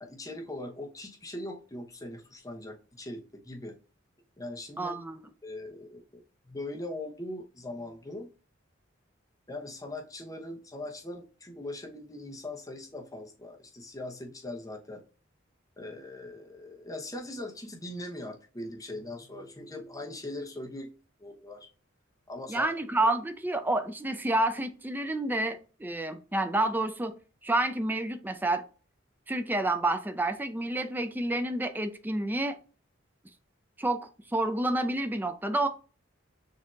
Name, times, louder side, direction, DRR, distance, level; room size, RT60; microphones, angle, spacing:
voice 1, 0.0-3.8 4.4-5.0 5.4-6.0 6.4-8.3 9.5-15.0 15.8-20.9 21.2-21.7 22.3-22.7, left 1 dB, 20° left, 0.9 m, -40 dB
voice 2, 4.8-5.2 22.5-27.1 27.4-28.6 29.3-32.6 33.8-34.0 34.3-35.7, right 2 dB, 10° right, 0.4 m, -29 dB
6.5 x 2.8 x 2.4 m
head